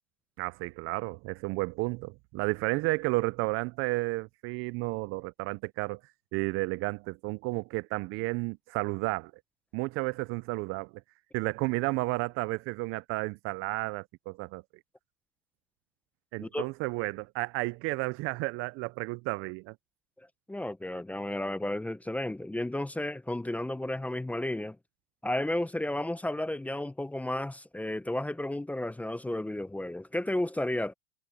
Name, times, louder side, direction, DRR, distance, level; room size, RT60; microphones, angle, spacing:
voice 1, 0.4-6.0 6.3-9.3 9.7-10.9 11.3-14.6 16.3-19.7, right 23 dB, 40° right, 0.5 m, -32 dB
voice 2, 20.5-24.8 25.2-30.9, left 1 dB, 5° left, 0.8 m, -32 dB
hypercardioid pair, 120°, 34 cm